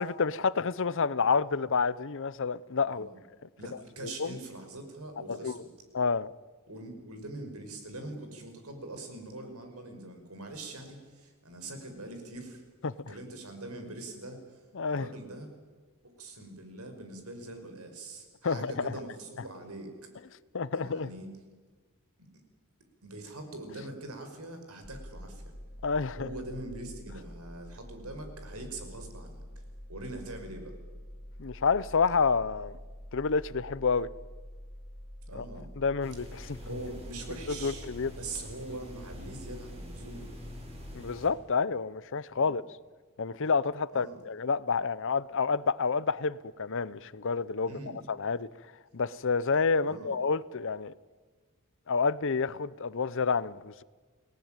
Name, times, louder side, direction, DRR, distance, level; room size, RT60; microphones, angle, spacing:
voice 1, 0.0-3.1 4.0-4.4 5.3-5.6 5.9-6.3 12.8-13.1 14.7-15.1 18.4-18.9 20.5-21.1 25.8-26.3 31.4-32.8 33.1-34.1 35.4-35.5 35.8-36.6 37.5-38.1 40.9-42.6 43.2-47.7 48.1-48.5 48.9-50.9 51.9-53.8, left 5 dB, 60° left, 0.7 m, -29 dB
voice 2, 3.6-5.7 6.7-12.6 13.1-15.5 16.0-20.1 20.7-21.3 22.2-22.3 23.0-25.5 26.2-29.6 29.9-30.8 35.3-35.7 36.6-40.2 42.3-42.5 43.9-44.2 47.6-48.0 49.8-50.2, right 2 dB, 80° right, 5.4 m, -43 dB
sound 1, 24.8-41.0, equal, 20° left, 1.2 m, -46 dB
sound 2, 36.0-41.3, equal, 30° right, 6.4 m, -47 dB
29.5 x 18.5 x 9.0 m
head